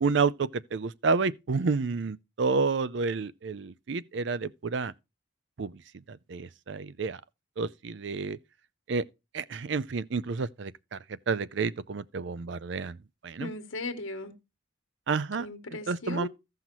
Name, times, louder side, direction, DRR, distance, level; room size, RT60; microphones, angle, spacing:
voice 1, 0.0-4.9 5.6-5.7 6.3-7.2 7.6-8.4 8.9-9.0 9.3-11.0 11.3-13.0 13.2-13.5 15.1-15.5 15.9-16.3, right 4 dB, 65° right, 0.5 m, -29 dB
voice 2, 13.4-14.3 15.4-16.3, left 2 dB, 85° left, 1.3 m, -37 dB
15.5 x 5.7 x 3.0 m
head